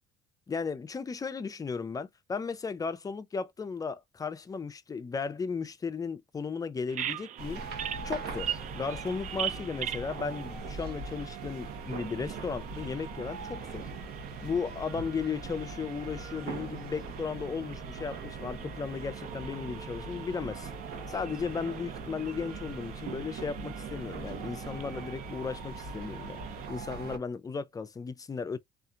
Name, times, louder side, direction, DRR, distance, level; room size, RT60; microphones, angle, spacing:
voice 1, 0.5-7.6 8.0-13.9 14.4-20.7 21.1-26.4 26.7-28.6, left 5 dB, 20° left, 0.4 m, -35 dB
Bird vocalization bird call bird song, 6.9-26.7, right 10 dB, 50° right, 0.4 m, -43 dB
sound 1, 7.4-27.2, right 4 dB, 70° right, 0.9 m, -40 dB
2.7 x 2.4 x 2.4 m
cardioid pair, 110°, 17 cm